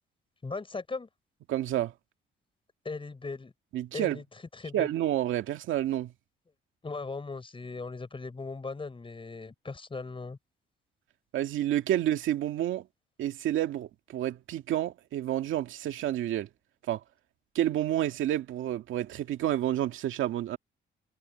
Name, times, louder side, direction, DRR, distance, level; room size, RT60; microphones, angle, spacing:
voice 1, 0.4-1.1 2.8-3.5 3.9-4.2 4.5-4.9 6.8-10.4, left 4 dB, 25° left, 6.4 m, -38 dB
voice 2, 1.5-1.9 3.7-4.2 4.7-6.1 11.3-12.9 13.2-16.5 16.9-17.0 17.5-20.6, right 12 dB, 80° right, 2.1 m, -29 dB
cardioid pair, 90°, 20 cm